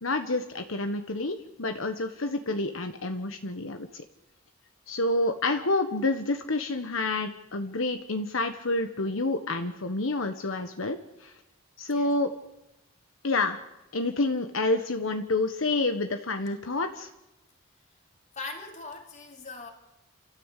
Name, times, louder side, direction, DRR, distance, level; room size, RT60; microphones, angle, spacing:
voice 1, 0.0-4.0 4.9-11.3 11.8-12.3 13.2-13.6 13.9-17.1, left 2 dB, 75° left, 7 dB, 1.3 m, -28 dB
voice 2, 18.3-19.7, left 3 dB, 35° left, 3 dB, 3.2 m, -40 dB
29.0 x 13.5 x 8.4 m, 0.96 s
head